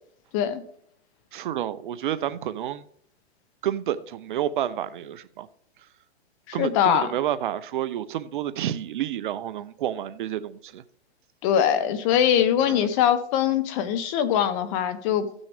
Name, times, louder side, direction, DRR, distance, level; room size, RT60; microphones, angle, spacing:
voice 1, 1.3-2.8 3.6-5.5 6.5-10.8 12.6-12.9, right 11 dB, 50° right, 0.5 m, -29 dB
voice 2, 6.5-7.1 11.4-15.3, left 9 dB, 30° left, 0.8 m, -22 dB
15.5 x 6.2 x 3.4 m
hypercardioid pair, 140°, 34 cm